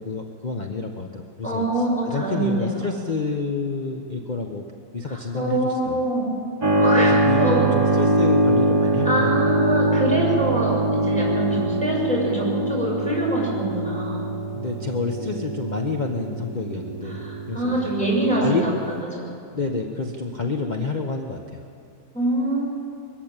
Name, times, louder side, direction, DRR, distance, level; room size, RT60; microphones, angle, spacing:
voice 1, 0.0-1.6 2.1-4.6 4.9-6.0 7.3-9.5 11.5-11.6 14.5-17.9 18.4-18.6 19.5-21.7, left 3 dB, 30° left, 2 dB, 1.2 m, -28 dB
voice 2, 1.4-2.9 5.1-6.3 6.8-7.7 8.8-14.3 17.0-18.7 19.1-19.3 22.1-22.6, right 1 dB, 5° left, -5 dB, 6.4 m, -25 dB
Keyboard (musical), 6.6-19.0, right 1 dB, 15° right, 2.0 m, -23 dB
22.0 x 15.0 x 9.0 m, 2.5 s
omnidirectional pair, 1.7 m